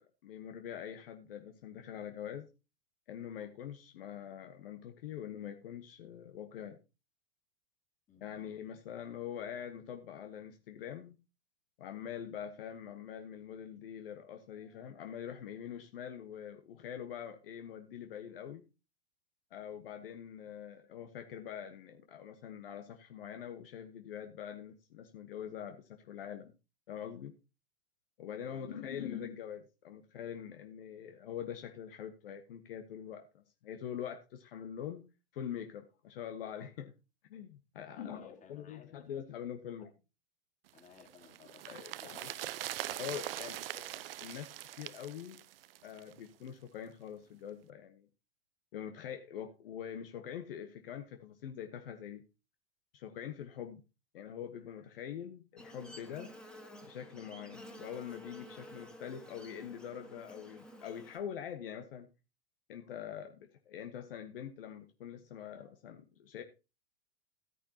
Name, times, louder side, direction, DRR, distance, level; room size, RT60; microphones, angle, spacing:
voice 1, 0.0-2.5 3.1-6.8 8.2-11.2 11.8-18.6 19.5-26.5 26.9-27.3 28.2-35.0 35.3-36.9 37.3-39.9 41.7-42.3 43.0-43.6 44.2-45.4 45.8-48.1 48.7-52.2 52.9-53.8 54.1-56.3 56.8-62.1 62.7-66.4, left 9 dB, 65° left, 1.4 m, -44 dB
voice 2, 28.5-29.0 37.9-39.1 39.8-39.9 40.7-44.2, left 6 dB, 25° left, 2.9 m, -58 dB
sound 1, 40.8-46.2 46.5-46.6, right 13 dB, 65° right, 0.6 m, -42 dB
Buzz, 55.6-61.2, equal, 5° left, 2.1 m, -51 dB
14.0 x 9.8 x 2.9 m
hypercardioid pair, 100°, 31 cm